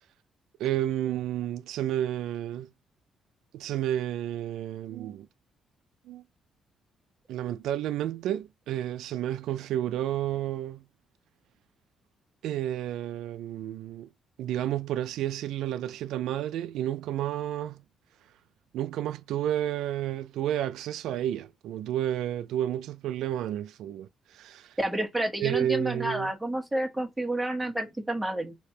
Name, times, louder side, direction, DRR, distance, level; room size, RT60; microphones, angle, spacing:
voice 1, 0.6-2.7 3.5-5.3 6.1-6.2 7.3-10.8 12.4-14.1 14.4-17.8 18.7-24.8 25.4-26.3, right 12 dB, 85° right, 0.3 m, -31 dB
voice 2, 24.8-28.5, right 1 dB, 10° right, 1.1 m, -30 dB
3.3 x 2.8 x 4.3 m
cardioid pair, 90°, 0 cm